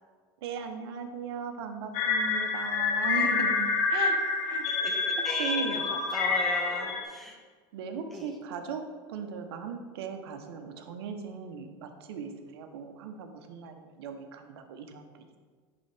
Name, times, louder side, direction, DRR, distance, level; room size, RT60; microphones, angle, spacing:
voice 1, 0.4-4.2 4.4-4.7 5.4-5.8 7.7-8.8 9.1-15.4, right 6 dB, 80° right, 6 dB, 0.9 m, -38 dB
sound 1, 1.9-7.0, left 4 dB, 65° left, 1.0 m, -28 dB
voice 2, 4.6-7.4 8.1-8.3, equal, ahead, -1 dB, 1.4 m, -37 dB
10.5 x 3.8 x 3.4 m, 1.6 s
supercardioid pair, 110°, 13 cm